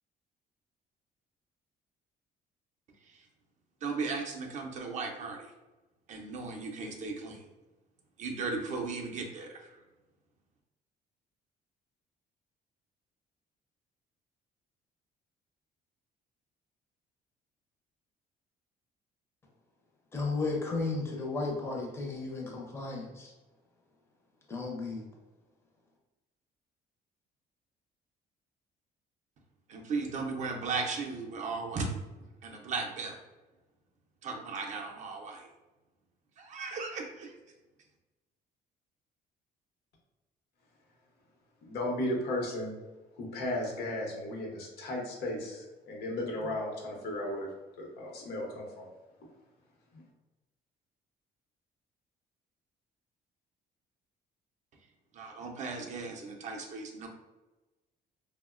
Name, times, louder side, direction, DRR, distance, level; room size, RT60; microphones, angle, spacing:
voice 1, 3.8-5.5 6.1-7.4 8.2-9.8 29.7-32.0 32.4-33.2 34.2-35.5 36.4-37.3 55.1-57.1, right 4 dB, 45° right, 1 dB, 0.4 m, -36 dB
voice 2, 20.1-23.3 24.5-25.0, left 3 dB, 15° left, -1 dB, 0.5 m, -34 dB
voice 3, 41.6-42.7 43.2-47.5 47.8-48.9, left 1 dB, 70° left, -1 dB, 0.8 m, -35 dB
2.8 x 2.0 x 2.3 m, 1.1 s
cardioid pair, 145°, 17 cm